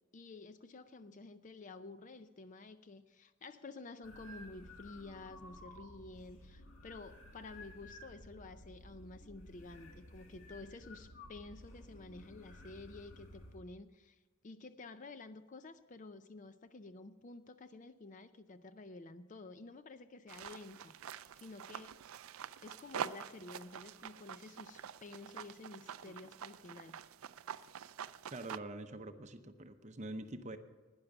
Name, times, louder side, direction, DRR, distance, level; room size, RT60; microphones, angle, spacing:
voice 1, 0.1-22.0 22.6-27.0, left 3 dB, 35° left, 11 dB, 0.4 m, -51 dB
sound 1, 4.0-13.6, left 1 dB, 80° left, 1.9 m, -54 dB
sound 2, 20.3-28.6, right 8 dB, 75° right, 0.4 m, -46 dB
voice 2, 28.3-30.6, right 1 dB, 30° right, 8 dB, 0.7 m, -45 dB
12.0 x 9.8 x 5.9 m, 1.3 s
head